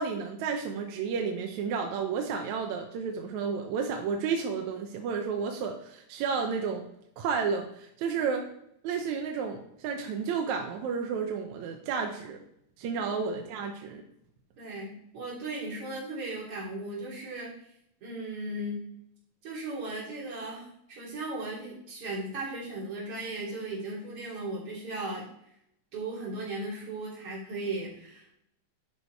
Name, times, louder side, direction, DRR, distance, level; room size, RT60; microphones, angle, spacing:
voice 1, 0.0-6.9 7.2-8.4 8.8-12.4 12.8-14.0, right 5 dB, 75° right, 3 dB, 2.0 m, -31 dB
voice 2, 14.6-17.5 18.0-18.8 19.4-25.2 25.9-28.3, right 2 dB, 50° right, -6 dB, 4.1 m, -37 dB
11.5 x 4.3 x 4.6 m, 0.74 s
omnidirectional pair, 3.5 m